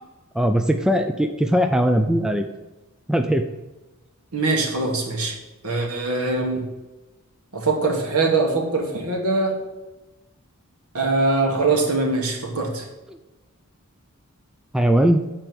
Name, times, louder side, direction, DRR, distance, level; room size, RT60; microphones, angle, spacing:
voice 1, 0.4-2.4 3.1-3.4 13.1-13.2 14.7-15.2, equal, 5° right, 6 dB, 0.3 m, -19 dB
voice 2, 4.3-5.3 5.6-6.6 7.5-9.6 10.9-12.8, right 3 dB, 80° right, 1 dB, 1.6 m, -22 dB
7.0 x 4.4 x 6.1 m, 1.1 s
head